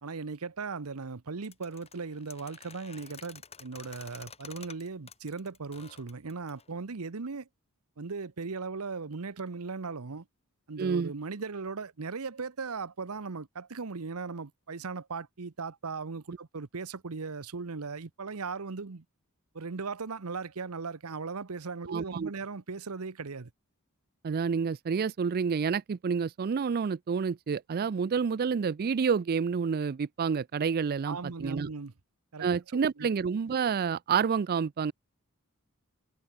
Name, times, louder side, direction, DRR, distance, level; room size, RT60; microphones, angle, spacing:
voice 1, 0.0-7.5 8.0-10.2 10.7-19.0 19.5-23.5 31.1-31.9 32.3-32.5 33.0-33.1, right 4 dB, 70° right, 0.9 m, -38 dB
sound 1, 1.4-6.7, left 6 dB, 30° left, 2.4 m, -50 dB
voice 2, 10.8-11.1 21.9-22.3 24.2-31.7 32.4-34.9, right 6 dB, 45° right, 0.4 m, -29 dB
head